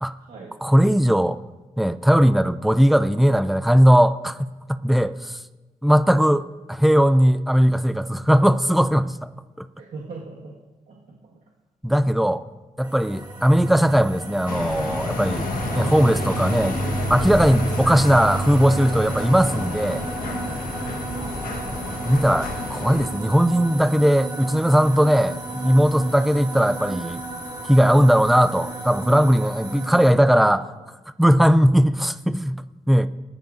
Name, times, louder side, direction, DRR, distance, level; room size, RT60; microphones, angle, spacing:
voice 1, 0.6-1.4 1.8-5.4 5.8-9.3 9.6-9.7 11.8-12.4 12.8-15.5 15.7-16.8 17.1-20.0 22.0-27.2 27.7-30.6 31.2-33.1, equal, ahead, 0.4 m, -18 dB
voice 2, 9.8-10.6 10.9-11.4 15.7-15.9 21.1-22.2 25.6-25.8 26.8-27.0 30.3-30.9, right 3 dB, 75° right, 1.9 m, -41 dB
sound 1, 12.8-30.1, right 3 dB, 25° right, 2.3 m, -32 dB
sound 2, 14.5-23.1, left 3 dB, 80° left, 1.5 m, -30 dB
19.5 x 11.5 x 2.7 m
wide cardioid pair, 145°, 15 cm